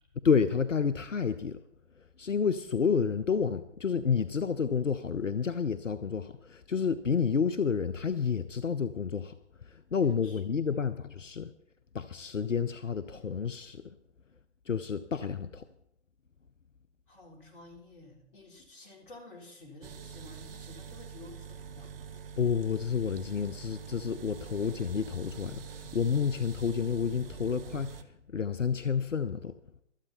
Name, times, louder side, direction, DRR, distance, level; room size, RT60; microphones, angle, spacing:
voice 1, 0.2-1.6 2.0-9.3 9.6-11.5 11.9-13.9 14.7-15.7 22.4-29.5, left 6 dB, 85° left, 14 dB, 0.7 m, -30 dB
voice 2, 10.0-10.8 17.1-21.9, left 2 dB, 45° left, 1 dB, 4.1 m, -52 dB
sound 1, 19.8-28.0, right 6 dB, 50° right, 1.1 m, -45 dB
24.5 x 8.2 x 4.2 m, 0.77 s
figure-of-eight pair, 125°, 37 cm